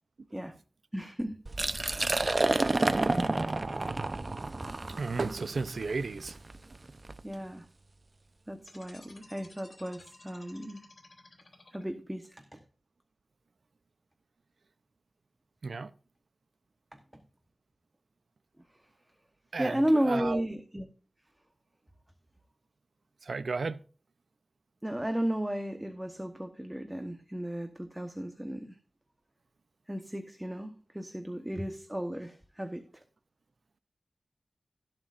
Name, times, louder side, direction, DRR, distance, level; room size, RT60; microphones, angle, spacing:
voice 1, 0.9-1.4 7.2-7.6 8.5-10.9 11.7-12.6 16.9-17.2 19.6-20.9 24.8-28.8 29.9-33.0, equal, 10° right, 1.1 m, -34 dB
Liquid, 1.5-7.2, right 2 dB, 40° right, 0.7 m, -30 dB
voice 2, 4.9-6.4 15.6-15.9 19.5-20.4 23.2-23.8, right 4 dB, 75° right, 0.6 m, -33 dB
sound 1, 8.6-12.2, left 2 dB, 50° left, 3.2 m, -55 dB
17.5 x 7.6 x 2.5 m
wide cardioid pair, 90°, 0 cm